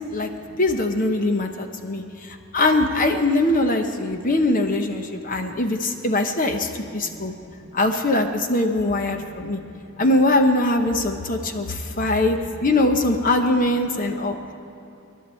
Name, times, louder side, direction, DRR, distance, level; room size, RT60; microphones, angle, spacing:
voice 1, 0.6-7.3 7.7-9.6 10.0-14.4, left 2 dB, 45° left, 5 dB, 0.9 m, -22 dB
voice 2, 6.8-8.4 9.1-10.1 13.9-14.5, equal, 15° right, -3 dB, 2.7 m, -48 dB
25.0 x 11.0 x 4.4 m, 2.8 s
head